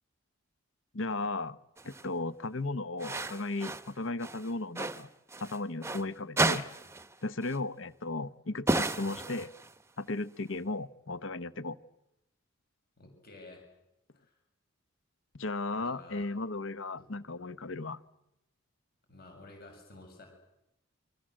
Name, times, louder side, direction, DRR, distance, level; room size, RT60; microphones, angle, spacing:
voice 1, 0.9-1.6 1.8-5.1 5.4-6.7 7.2-9.5 10.0-11.8 15.3-18.0, left 2 dB, 65° left, 1.0 m, -35 dB
sound 1, 1.8-2.1 3.0-3.9 4.2-6.0 6.4-7.1 7.4-7.6 8.7-9.8, right 2 dB, 15° right, 0.9 m, -33 dB
voice 2, 13.0-13.7 14.1-14.3 15.7-16.3 17.0-17.1 19.1-20.3, left 2 dB, 45° left, 7.0 m, -52 dB
29.0 x 23.5 x 7.7 m
head